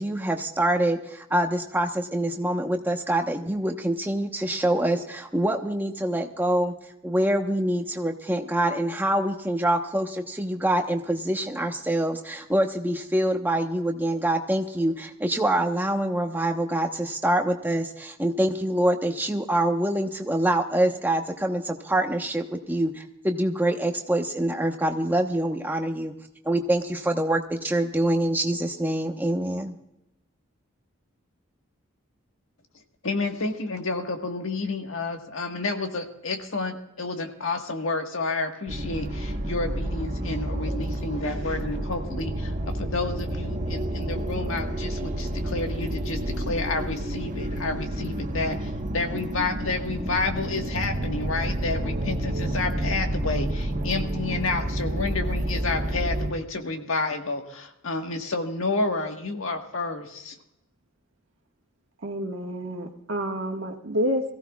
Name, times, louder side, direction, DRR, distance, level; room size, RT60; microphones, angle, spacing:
voice 1, 0.0-6.7 7.0-26.1 26.4-29.8, right 1 dB, 10° right, 3 dB, 1.0 m, -25 dB
voice 2, 33.0-60.4, left 3 dB, 80° left, 4 dB, 1.5 m, -30 dB
sound 1, 38.7-56.3, right 1 dB, 35° right, 1.3 m, -29 dB
voice 3, 62.0-64.3, equal, 65° right, 2 dB, 1.6 m, -28 dB
22.5 x 15.5 x 2.4 m, 0.85 s
head